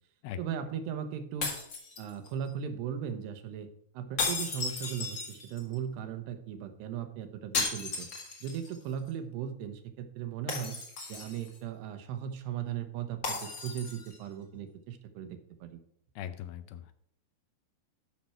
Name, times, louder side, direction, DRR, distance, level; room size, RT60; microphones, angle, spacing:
voice 1, 0.4-1.5 2.0-3.7 3.9-8.1 8.4-10.8 11.1-15.8, right 8 dB, 85° right, 8 dB, 3.1 m, -37 dB
sound 1, 1.4-2.5 4.2-5.7 7.5-8.8 9.1-9.2 10.5-11.6 13.2-14.2, left 4 dB, 45° left, 1.7 m, -35 dB
voice 2, 16.2-16.9, left 10 dB, 80° left, 11 dB, 2.4 m, -40 dB
11.5 x 5.9 x 4.4 m, 0.70 s
omnidirectional pair, 4.7 m